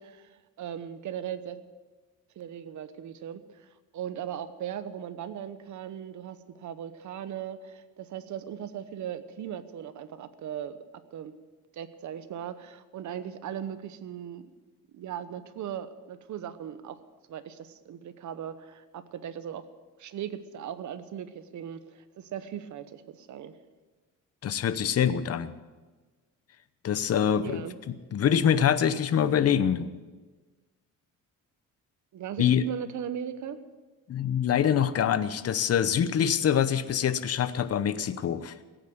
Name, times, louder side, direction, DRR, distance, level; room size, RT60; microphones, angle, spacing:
voice 1, 0.0-1.6 2.4-10.8 11.1-11.3 11.7-14.5 14.9-17.0 17.3-19.6 20.0-23.6 27.4-27.8 32.1-33.6 36.7-37.0, right 9 dB, 60° right, 12 dB, 1.1 m, -38 dB
voice 2, 24.4-25.5 26.8-29.9 32.4-32.6 34.1-38.5, left 8 dB, 45° left, 13 dB, 0.9 m, -25 dB
17.0 x 9.1 x 8.0 m, 1.3 s
cardioid pair, 125°, 33 cm